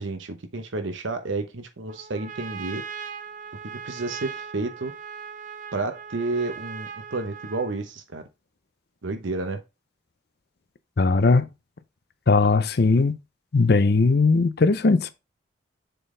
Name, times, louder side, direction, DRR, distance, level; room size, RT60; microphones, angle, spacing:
voice 1, 0.0-2.8 3.8-4.9 5.7-8.2 9.0-9.6, right 3 dB, 75° right, 0.9 m, -30 dB
Trumpet, 1.9-7.9, right 7 dB, 40° right, 0.5 m, -39 dB
voice 2, 11.0-11.5 12.3-13.2 13.5-15.1, left 3 dB, 55° left, 0.5 m, -19 dB
6.8 x 3.9 x 3.8 m
head